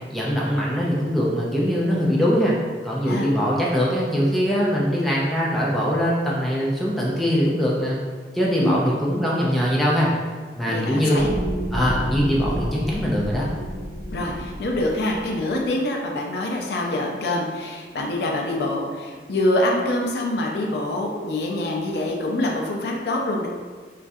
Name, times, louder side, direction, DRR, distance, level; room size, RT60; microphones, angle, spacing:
voice 1, 0.1-2.6 2.8-8.0 8.3-10.1 10.6-11.2 11.7-13.4, equal, ahead, -6 dB, 0.4 m, -22 dB
voice 2, 8.6-9.0 10.7-11.3 11.8-11.9 14.1-23.5, left 1 dB, 65° left, 0 dB, 0.4 m, -25 dB
sound 1, 11.2-15.7, equal, 80° right, 0.9 m, -31 dB
3.0 x 2.4 x 2.6 m, 1.5 s
head